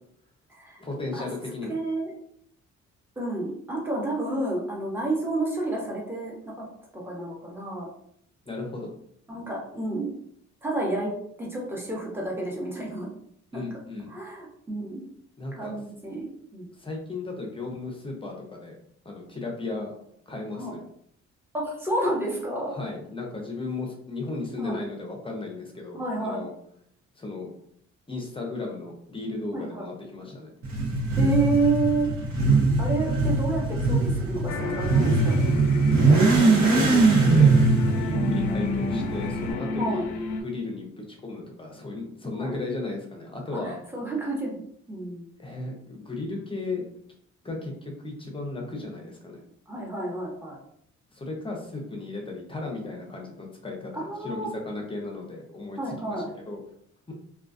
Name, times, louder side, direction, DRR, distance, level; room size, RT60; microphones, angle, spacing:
voice 1, 0.8-1.8 8.5-8.9 13.5-14.1 15.4-15.8 16.8-18.8 19.0-19.9 20.3-20.8 22.7-26.5 27.2-27.5 28.1-30.5 36.1-37.6 37.9-40.1 40.4-43.8 45.4-46.9 47.4-49.4 51.1-56.6 57.1-57.2, left 3 dB, 20° left, 1 dB, 0.7 m, -35 dB
voice 2, 1.7-2.1 3.2-6.6 6.9-7.9 9.3-10.1 10.6-11.1 11.4-13.1 13.5-13.6 14.1-15.0 15.5-16.7 20.5-20.7 21.5-22.7 24.6-24.8 25.9-26.5 29.5-29.7 31.2-32.1 32.8-35.5 38.1-38.4 39.8-40.0 42.3-42.5 43.6-44.6 44.9-45.3 49.7-50.6 53.9-54.5 55.8-56.3, right 2 dB, 5° right, -4 dB, 0.9 m, -30 dB
Motorcycle / Accelerating revving vroom, 30.6-39.5, right 3 dB, 60° right, 1.0 m, -21 dB
sound 1, 34.5-40.4, left 3 dB, 80° left, 0.5 m, -30 dB
2.3 x 2.3 x 2.5 m, 0.69 s
cardioid pair, 90°, 30 cm